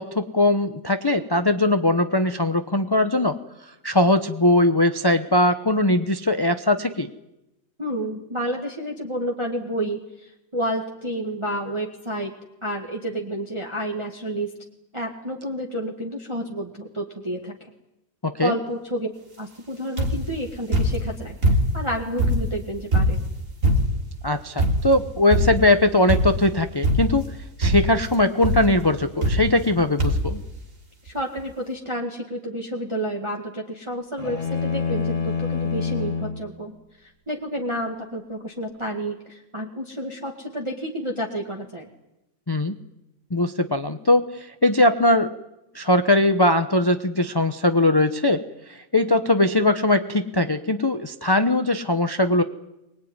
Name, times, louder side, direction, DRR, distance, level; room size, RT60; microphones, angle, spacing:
voice 1, 0.0-3.4 3.8-7.1 18.2-18.5 24.2-27.2 27.6-30.4 42.5-42.7 43.3-45.3 45.7-48.4 48.7-52.4, left 1 dB, 20° left, 8 dB, 0.7 m, -20 dB
voice 2, 7.8-12.3 12.6-14.5 14.9-17.7 18.4-19.1 19.4-21.4 21.7-23.2 31.0-36.7 37.0-41.9, equal, 15° right, 0 dB, 2.0 m, -30 dB
sound 1, 20.0-20.4 20.7-21.9 22.2-24.1 24.6-25.0 25.3-25.7 26.1-26.5 26.8-27.3 27.6-28.1 28.4-28.7 29.2-29.7 30.0-30.4 31.1-31.2 31.4-31.5, equal, 45° right, 3.4 m, -22 dB
sound 2, 34.2-36.4, left 5 dB, 35° left, 2.8 m, -26 dB
24.5 x 20.5 x 9.7 m, 0.92 s
omnidirectional pair, 2.0 m